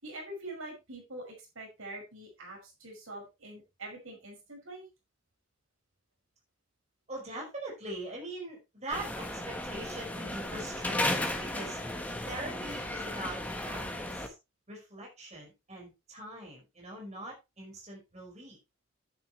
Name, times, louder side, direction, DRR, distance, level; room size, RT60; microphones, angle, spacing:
voice 1, 0.0-4.9, right 1 dB, 85° right, 0 dB, 5.7 m, -44 dB
voice 2, 7.1-11.8 12.3-14.3 14.7-18.6, right 1 dB, 35° right, -2 dB, 5.1 m, -42 dB
sound 1, 8.9-14.3, left 1 dB, 10° left, 1.4 m, -35 dB
10.5 x 9.7 x 3.1 m, 0.25 s
head